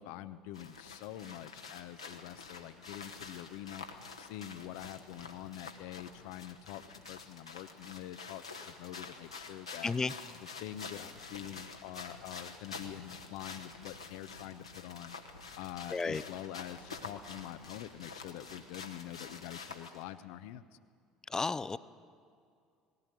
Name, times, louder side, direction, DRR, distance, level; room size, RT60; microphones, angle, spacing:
voice 1, 0.0-20.6, left 12 dB, 60° left, 14 dB, 0.7 m, -46 dB
sound 1, 0.5-20.0, left 4 dB, 85° left, 1.4 m, -48 dB
voice 2, 9.8-10.1 15.9-16.2 21.3-21.8, left 4 dB, 20° left, 17 dB, 0.6 m, -32 dB
19.5 x 16.5 x 9.2 m, 2.3 s
figure-of-eight pair, 60°, 3 cm